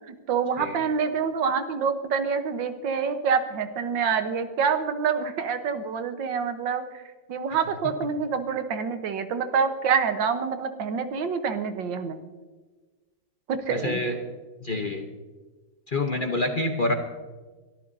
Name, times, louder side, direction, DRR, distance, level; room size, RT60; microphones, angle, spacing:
voice 1, 0.1-7.0 7.3-12.2 13.5-14.0, right 6 dB, 90° right, 8 dB, 1.8 m, -26 dB
voice 2, 13.7-14.1 14.6-15.1 15.9-16.9, left 2 dB, 40° left, 4 dB, 0.8 m, -27 dB
23.0 x 13.5 x 2.7 m, 1.3 s
omnidirectional pair, 2.0 m